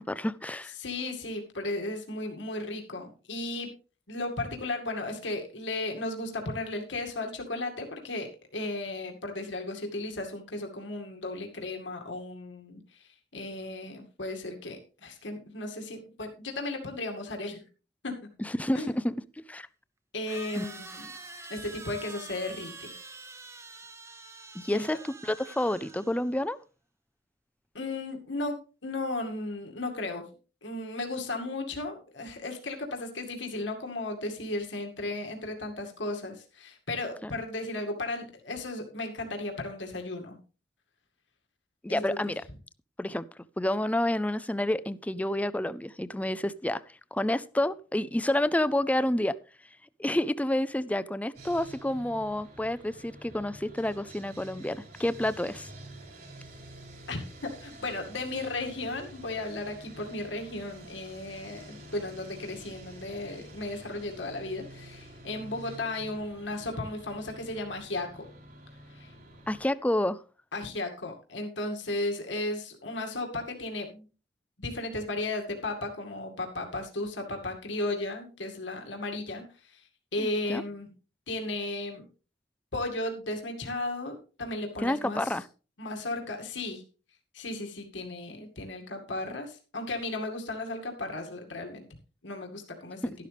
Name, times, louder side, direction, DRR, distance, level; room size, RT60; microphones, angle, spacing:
voice 1, 0.0-0.7 18.4-19.2 19.5-19.7 20.6-20.7 24.5-26.6 37.2-37.3 41.8-42.3 43.0-43.2 43.6-46.8 47.1-49.3 50.0-55.7 69.5-70.2 80.2-80.6 84.8-85.4, left 1 dB, 10° left, 16 dB, 0.4 m, -29 dB
voice 2, 0.8-3.7 4.1-17.6 18.0-18.1 18.7-18.9 20.1-21.1 21.5-22.9 24.7-24.8 27.7-28.6 28.8-30.2 30.6-40.4 41.9-42.2 57.1-68.2 68.9-69.1 70.5-74.0 74.6-79.8 80.1-80.9 81.3-82.0 82.7-85.3 85.8-86.8 87.3-91.8 92.2-93.0, left 2 dB, 90° left, 2 dB, 2.2 m, -35 dB
sound 1, 20.3-26.4, right 3 dB, 15° right, 0.9 m, -46 dB
Sawing, 51.3-69.6, right 1 dB, 55° right, 5.1 m, -48 dB
12.5 x 11.5 x 3.4 m, 0.35 s
head